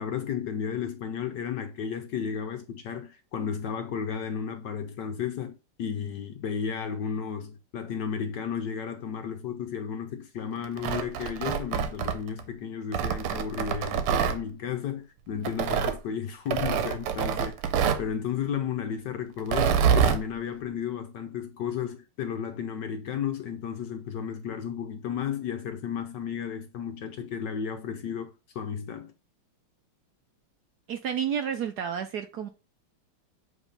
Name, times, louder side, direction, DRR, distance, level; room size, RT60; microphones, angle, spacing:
voice 1, 0.0-17.6 18.0-29.1, left 7 dB, 65° left, 1.2 m, -33 dB
Tearing, 10.6-12.4 12.9-14.4 15.5-16.0 16.5-18.1 19.4-20.2, right 8 dB, 90° right, 1.8 m, -26 dB
voice 2, 30.9-32.5, right 8 dB, 70° right, 1.0 m, -30 dB
8.1 x 3.3 x 5.2 m
omnidirectional pair, 2.4 m